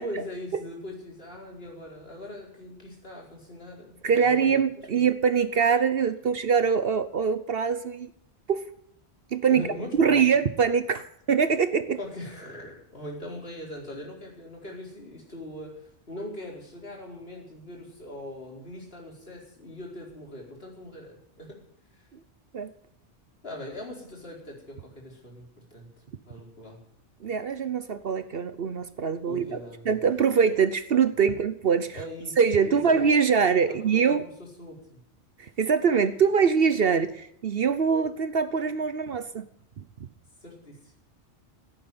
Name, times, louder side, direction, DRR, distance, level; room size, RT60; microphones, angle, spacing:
voice 1, 0.0-4.6 5.0-5.1 9.5-10.2 12.0-21.6 21.9-22.0 23.4-25.4 25.7-25.9 26.3-26.8 29.3-29.9 31.9-33.0 33.7-34.0 34.4-35.0 40.4-40.9, left 1 dB, 55° left, -1 dB, 4.6 m, -41 dB
voice 2, 4.0-8.1 8.5-8.6 9.3-9.6 9.9-12.0 22.5-22.7 27.2-29.6 29.9-32.0 32.4-34.2 35.4-39.5 39.8-39.9, right 6 dB, 55° right, 13 dB, 1.0 m, -23 dB
16.0 x 8.8 x 9.6 m, 0.70 s
omnidirectional pair, 1.2 m